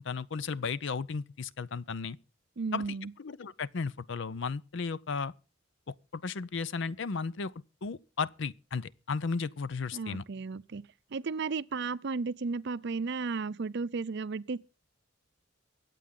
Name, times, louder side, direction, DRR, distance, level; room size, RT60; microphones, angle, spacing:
voice 1, 0.0-2.2 2.7-2.8 3.2-5.3 5.9-7.5 7.8-10.2, left 5 dB, 65° left, 0.6 m, -34 dB
voice 2, 2.6-3.1 9.9-10.8 11.1-14.6, right 4 dB, 60° right, 0.6 m, -34 dB
23.5 x 8.5 x 3.7 m
head